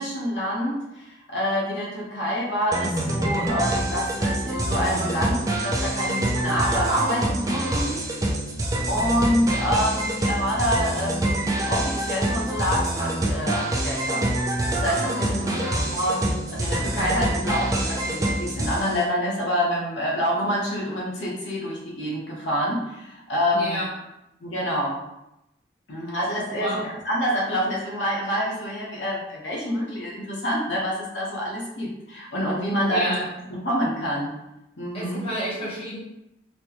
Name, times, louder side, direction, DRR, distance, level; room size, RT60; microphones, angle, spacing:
voice 1, 0.0-8.0 8.9-14.3 14.7-23.8 24.4-25.0 25.9-33.1 33.5-34.3 34.8-35.2, equal, 70° left, -5 dB, 1.0 m, -27 dB
sound 1, 2.7-19.0, right 1 dB, 20° right, 0.3 m, -26 dB
voice 2, 15.3-15.9 23.5-23.9 26.5-26.8 32.9-33.3 34.9-36.0, equal, 30° left, -6 dB, 0.9 m, -30 dB
4.3 x 2.1 x 2.9 m, 0.88 s
head